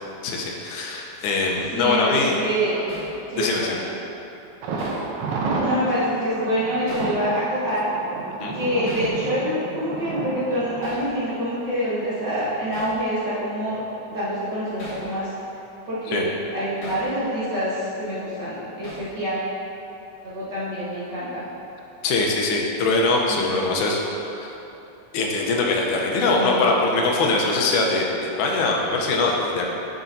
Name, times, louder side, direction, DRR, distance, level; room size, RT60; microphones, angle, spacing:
voice 1, 0.2-2.3 3.4-3.8 8.4-8.5 16.1-16.3 22.0-24.0 24.3-24.5 25.1-28.1 28.4-29.7, left 3 dB, 90° left, -1 dB, 2.3 m, -22 dB
voice 2, 1.7-2.8 3.3-3.8 5.6-7.9 8.5-13.8 14.1-15.3 15.9-19.5 20.2-21.4 23.3-23.5 26.2-26.8, equal, 45° right, -11 dB, 1.8 m, -26 dB
Hammer, 2.9-3.2 4.8-5.1 6.9-7.2 8.9-9.1 10.8-11.1 12.7-13.0 14.8-15.1 16.8-17.1 18.8-19.1, left 1 dB, 60° left, 2.9 m, -38 dB
Thunder, 4.6-12.4 12.7-12.8 13.2-13.3, right 3 dB, 80° right, 1.3 m, -31 dB
11.5 x 5.0 x 2.7 m, 3.0 s
omnidirectional pair, 3.4 m